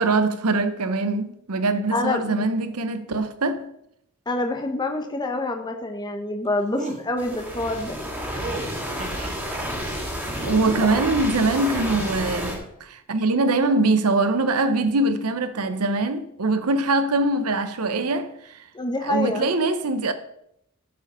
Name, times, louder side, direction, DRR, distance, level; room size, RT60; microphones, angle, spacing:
voice 1, 0.0-3.7 10.4-18.6 19.0-20.1, right 2 dB, 80° right, 0.7 m, -23 dB
voice 2, 1.9-2.4 4.3-8.0 10.8-10.9 18.7-19.5, left 2 dB, 20° left, 0.9 m, -26 dB
sound 1, 6.8-7.0 8.3-9.6 10.3-11.3 11.8-12.3, right 2 dB, 35° right, 1.5 m, -35 dB
sound 2, 7.2-12.6, equal, 10° right, 2.3 m, -30 dB
13.0 x 5.0 x 5.5 m
head